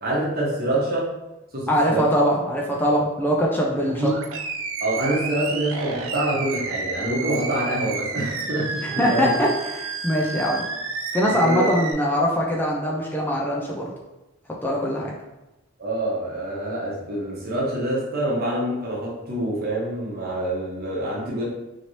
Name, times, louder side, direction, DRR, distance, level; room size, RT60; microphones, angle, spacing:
voice 1, 0.0-1.1 1.5-2.1 3.8-4.1 4.8-9.4 11.3-11.7 12.0-12.1 15.8-21.4, right 1 dB, 45° right, -5 dB, 0.9 m, -26 dB
voice 2, 1.7-4.1 8.8-10.7 11.1-13.9 14.6-15.1, equal, 10° left, -3 dB, 0.3 m, -22 dB
Animal, 3.9-11.9, right 4 dB, 65° right, 0.4 m, -31 dB
2.9 x 2.6 x 3.0 m, 1.0 s
head